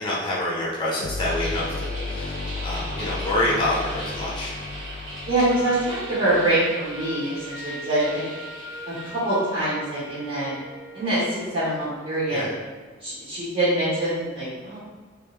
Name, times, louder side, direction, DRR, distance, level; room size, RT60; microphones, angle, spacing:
voice 1, 0.0-4.5 12.3-12.5, left 1 dB, 25° left, -4 dB, 0.7 m, -27 dB
sound 1, 1.0-7.5, left 3 dB, 55° left, 0.3 m, -34 dB
sound 2, 1.2-9.6, right 1 dB, 70° right, 1.1 m, -39 dB
voice 2, 5.3-8.2 8.9-10.5 10.9-12.5 13.0-14.8, right 1 dB, 30° right, -13 dB, 1.3 m, -24 dB
Wind instrument woodwind instrument, 5.5-11.6, right 1 dB, 15° right, 0.9 m, -40 dB
3.3 x 2.7 x 3.3 m, 1.4 s
head